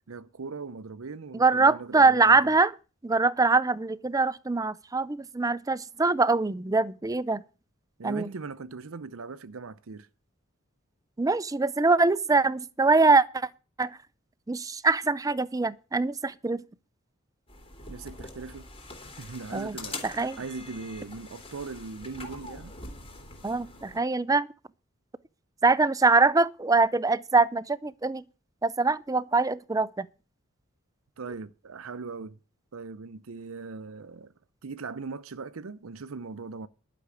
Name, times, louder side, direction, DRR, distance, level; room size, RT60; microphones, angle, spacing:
voice 1, 0.1-2.5 8.0-10.1 17.9-18.7 19.0-22.8 31.2-32.4 32.7-34.3 34.6-36.7, right 4 dB, 90° right, 0.6 m, -39 dB
voice 2, 1.3-2.7 3.0-7.4 8.0-8.3 11.2-13.5 13.8-14.0 14.5-16.6 19.5-19.8 20.0-20.4 23.4-24.5 25.6-28.2 28.6-30.1, right 3 dB, 15° right, 0.5 m, -23 dB
sound 1, 17.5-24.0, left 2 dB, 30° left, 2.9 m, -44 dB
11.5 x 6.0 x 8.4 m
head